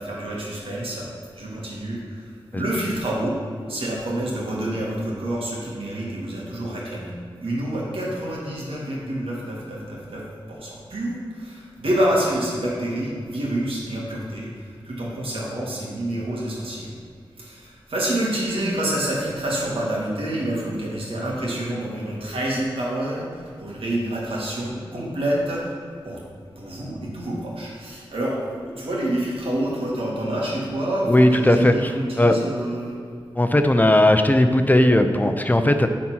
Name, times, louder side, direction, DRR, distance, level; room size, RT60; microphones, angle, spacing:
voice 1, 0.0-3.4 3.7-7.1 7.4-17.0 17.4-25.7 26.0-26.2 26.6-33.0, right 1 dB, 80° right, -4 dB, 2.1 m, -27 dB
voice 2, 31.1-31.9 32.2-32.4 33.4-35.9, left 1 dB, 20° left, 7 dB, 0.6 m, -17 dB
9.1 x 4.2 x 5.8 m, 2.2 s
cardioid pair, 55°, 9 cm